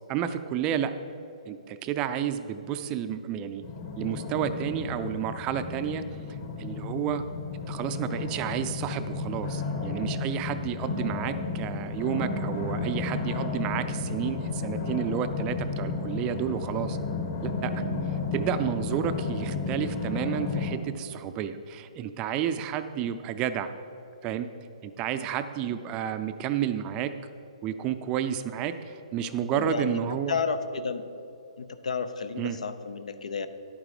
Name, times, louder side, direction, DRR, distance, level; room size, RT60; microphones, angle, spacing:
voice 1, 0.1-0.9 1.5-3.6 4.0-6.0 6.6-7.2 7.7-17.0 17.4-17.8 18.3-23.7 24.2-24.5 24.8-27.1 27.6-30.4 32.4-32.6, right 9 dB, 20° right, 10 dB, 0.4 m, -31 dB
sound 1, 3.6-20.8, left 4 dB, 40° left, 1.4 m, -32 dB
voice 2, 29.5-30.0 30.3-31.0 31.6-33.5, left 5 dB, 80° left, 11 dB, 0.7 m, -31 dB
10.5 x 8.9 x 4.9 m, 2.9 s
hypercardioid pair, 155°, 4 cm